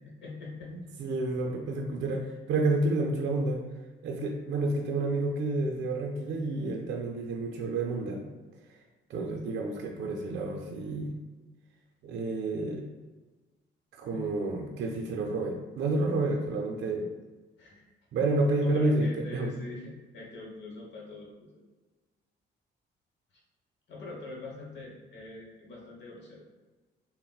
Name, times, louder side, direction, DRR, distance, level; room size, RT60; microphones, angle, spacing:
voice 1, 0.0-0.7 14.0-14.3 17.6-17.9 18.6-21.6 23.9-26.4, left 2 dB, 65° left, -2 dB, 0.9 m, -43 dB
voice 2, 0.7-3.6 4.0-8.2 9.1-11.1 12.0-12.9 14.0-17.1 18.1-19.5, right 2 dB, 65° right, 2 dB, 0.4 m, -30 dB
3.7 x 2.0 x 2.2 m, 1.2 s
cardioid pair, 90°, 20 cm